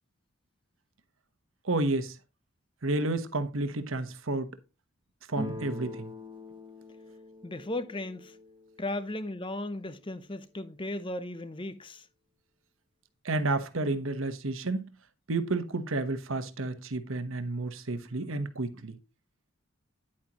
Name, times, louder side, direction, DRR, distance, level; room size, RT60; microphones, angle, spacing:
voice 1, 1.6-2.1 2.8-4.5 5.3-6.1 13.2-14.8 15.3-19.0, right 2 dB, 70° right, 1.2 m, -31 dB
sound 1, 5.3-9.0, left 1 dB, 20° right, 1.3 m, -42 dB
voice 2, 7.4-8.4 8.8-12.1, left 1 dB, 25° left, 0.8 m, -36 dB
10.0 x 8.7 x 3.0 m
head